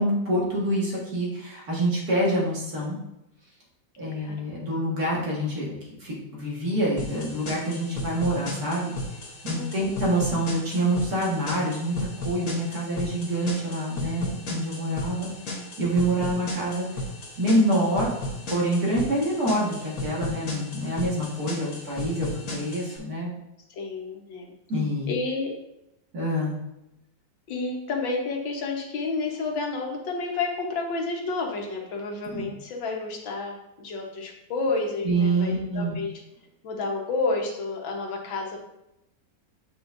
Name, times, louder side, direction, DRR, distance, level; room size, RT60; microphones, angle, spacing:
voice 1, 0.0-3.0 4.0-5.6 6.0-8.9 9.4-16.9 17.4-18.1 18.5-23.3 24.7-25.1 26.1-26.6 32.3-32.5 35.0-36.0, right 1 dB, 55° right, -5 dB, 2.2 m, -26 dB
voice 2, 4.2-4.5 9.5-10.0 23.7-24.5 25.1-25.5 27.5-36.1 36.6-38.6, left 3 dB, 85° left, 0 dB, 1.9 m, -30 dB
sound 1, 7.0-23.0, left 1 dB, 50° left, 1.8 m, -35 dB
8.0 x 5.5 x 2.6 m, 0.89 s
omnidirectional pair, 2.0 m